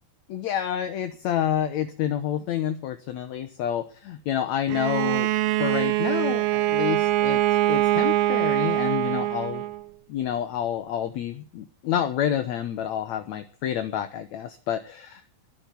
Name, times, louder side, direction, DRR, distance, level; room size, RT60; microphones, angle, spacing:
voice 1, 0.3-5.3 5.6-7.4 7.7-9.6 10.1-15.2, left 10 dB, 65° left, 9 dB, 2.3 m, -28 dB
Bowed string instrument, 4.7-9.8, right 14 dB, 70° right, 1.7 m, -23 dB
21.0 x 7.0 x 8.4 m, 0.40 s
omnidirectional pair, 3.7 m